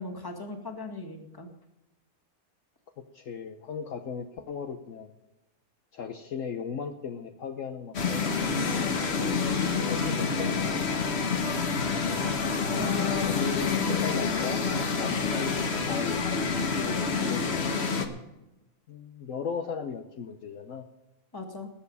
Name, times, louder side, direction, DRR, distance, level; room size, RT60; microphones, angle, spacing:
voice 1, 0.0-1.5 12.8-13.6 13.8-14.2 21.3-21.7, left 4 dB, 15° left, 2 dB, 1.9 m, -36 dB
voice 2, 3.0-5.1 5.9-8.4 9.9-10.7 13.2-14.6 14.9-15.5 15.9-16.3 16.8-17.8 18.9-20.8, left 6 dB, 65° left, 6 dB, 1.2 m, -37 dB
sound 1, 7.9-18.1, left 5 dB, 50° left, 1.4 m, -28 dB
20.0 x 7.0 x 5.5 m, 0.96 s
omnidirectional pair, 1.5 m